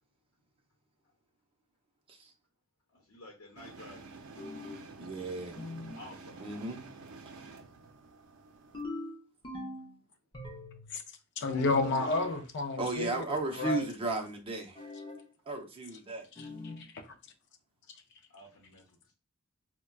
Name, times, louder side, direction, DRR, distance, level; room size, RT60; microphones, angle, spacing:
voice 1, 2.9-4.1 6.0-6.4 11.5-12.1 18.3-19.1, left 2 dB, 75° left, 0.8 m, -49 dB
sound 1, 3.6-8.8, right 4 dB, 80° right, 0.5 m, -50 dB
sound 2, 4.4-4.9 5.6-6.1 8.7-9.9 10.3-11.0 11.9-12.4 14.7-15.3 16.4-16.9, left 2 dB, 25° left, 0.7 m, -42 dB
voice 2, 5.0-5.6 6.4-6.8 12.8-14.8 15.5-16.3, right 3 dB, 25° right, 0.6 m, -34 dB
voice 3, 11.4-13.9 16.4-16.5 16.8-17.1, left 3 dB, 55° left, 0.5 m, -31 dB
4.4 x 2.2 x 2.2 m
head